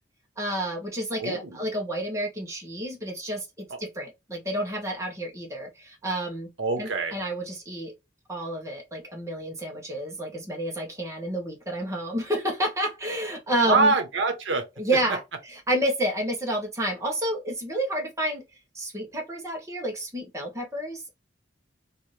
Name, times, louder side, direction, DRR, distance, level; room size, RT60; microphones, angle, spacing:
voice 1, 0.4-6.5 6.8-7.9 8.3-13.9 14.8-18.4 18.7-21.1, right 1 dB, 15° right, 1.0 m, -30 dB
voice 2, 1.2-1.6 3.7-3.8 6.6-7.2 13.7-14.6, right 3 dB, 80° right, 0.8 m, -24 dB
3.0 x 2.6 x 3.1 m
head